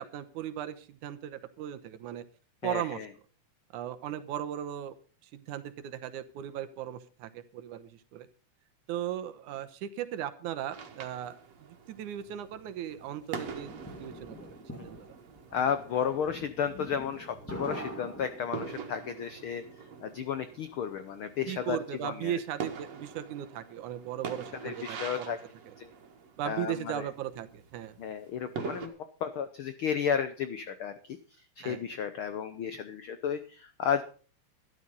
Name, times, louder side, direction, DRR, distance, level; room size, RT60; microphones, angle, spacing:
voice 1, 0.0-2.2 2.6-3.0 3.7-5.0 5.3-8.3 8.9-15.2 21.5-25.4 25.7-25.8 26.4-28.0 31.6-31.8, right 11 dB, 80° right, 11 dB, 2.4 m, -37 dB
voice 2, 2.6-3.1 15.5-19.6 20.0-21.8 22.0-22.4 24.6-25.4 25.8-25.9 26.4-27.1 28.0-28.9 29.2-31.2 31.6-34.0, left 7 dB, 80° left, 11 dB, 1.2 m, -33 dB
sound 1, 10.7-28.9, right 5 dB, 60° right, 2.7 m, -45 dB
sound 2, 13.0-18.9, equal, 5° left, 1.5 m, -44 dB
12.5 x 11.5 x 5.4 m, 0.38 s
omnidirectional pair, 3.5 m